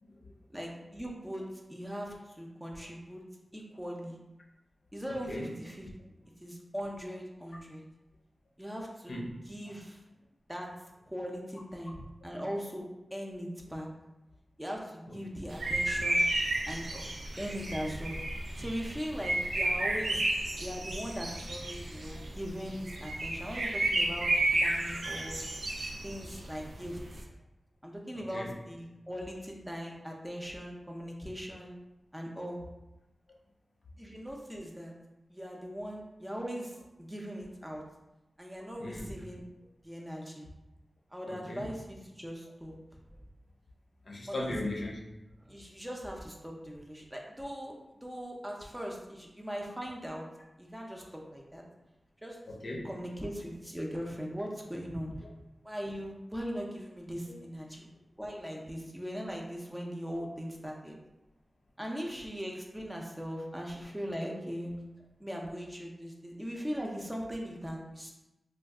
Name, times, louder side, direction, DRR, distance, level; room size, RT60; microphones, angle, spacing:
voice 1, 0.0-0.3 5.3-5.5 9.1-9.3 15.1-15.2 25.0-25.2 28.1-28.5 38.8-39.1 41.3-41.7 44.0-45.0 45.6-45.7 52.5-52.9 55.2-55.3 57.3-57.4, left 1 dB, 70° left, -1 dB, 0.6 m, -38 dB
voice 2, 0.5-3.2 3.5-4.2 4.9-5.9 6.4-7.8 8.6-10.0 10.5-10.7 11.1-12.9 13.1-13.9 14.6-16.2 16.7-17.0 17.4-18.2 18.6-20.2 20.6-25.4 26.0-27.0 27.8-31.8 32.1-32.6 34.0-34.9 35.3-37.8 38.4-39.4 39.8-40.5 41.1-42.7 44.3-44.6 45.4-47.7 48.0-50.2 50.6-51.6 52.2-52.4 52.8-55.2 55.6-57.9 58.2-61.0 61.8-64.7 65.2-68.1, equal, 10° right, 0 dB, 0.6 m, -40 dB
sound 1, 15.5-27.2, right 1 dB, 90° right, 0.4 m, -32 dB
2.5 x 2.3 x 3.5 m, 0.95 s
wide cardioid pair, 65°, 0 cm